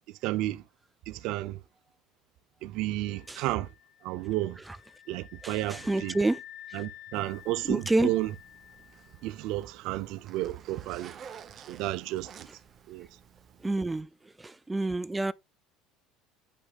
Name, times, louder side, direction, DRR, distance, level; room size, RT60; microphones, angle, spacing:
voice 1, 0.2-0.6 1.1-1.6 2.6-3.7 4.0-4.6 5.1-6.2 6.7-8.4 9.2-11.2 11.7-12.5 12.9-13.1, right 16 dB, 70° right, 0.6 m, -32 dB
sound 1, 3.0-9.8, left 11 dB, 50° left, 1.4 m, -51 dB
voice 2, 5.4-6.4 7.7-8.1 13.6-14.1 14.4-15.3, right 2 dB, 10° right, 0.3 m, -28 dB
Zipper (clothing), 7.2-14.0, right 7 dB, 35° right, 0.9 m, -52 dB
8.6 x 6.2 x 2.4 m
supercardioid pair, 115°, 0 cm